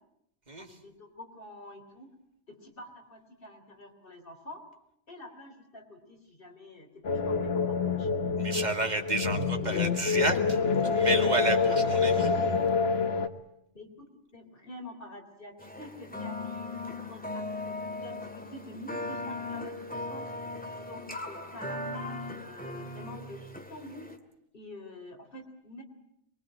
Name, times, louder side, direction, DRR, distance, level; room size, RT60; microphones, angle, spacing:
voice 1, 0.6-2.1 2.5-4.6 5.1-8.1 13.7-20.3 20.8-24.1 24.5-25.8, left 1 dB, 60° left, 4 dB, 3.9 m, -47 dB
sound 1, 7.0-13.3, left 5 dB, 75° left, 1.6 m, -27 dB
voice 2, 8.4-10.6 10.9-12.3, right 2 dB, 45° right, 4 dB, 2.5 m, -31 dB
sound 2, 15.6-24.2, left 2 dB, 10° left, 2.2 m, -38 dB
23.5 x 22.5 x 8.8 m, 0.78 s
omnidirectional pair, 1.1 m